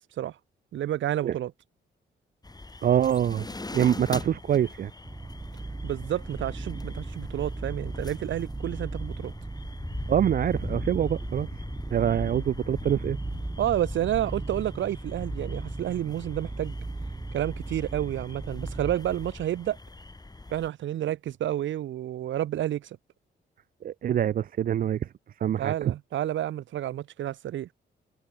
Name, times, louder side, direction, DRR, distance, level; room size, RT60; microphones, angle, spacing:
voice 1, 0.7-1.5 5.8-9.3 13.6-16.7 17.3-19.8 20.5-23.0 25.6-27.7, right 12 dB, 80° right, 1.8 m, -30 dB
sound 1, 2.4-20.7, left 2 dB, 20° left, 6.0 m, -41 dB
voice 2, 2.8-3.5 3.7-4.9 10.1-11.5 11.9-13.2 23.8-25.1 25.4-25.9, right 10 dB, 50° right, 0.4 m, -25 dB
sound 2, 5.0-19.0, right 2 dB, 20° right, 1.8 m, -37 dB
cardioid pair, 70°, 19 cm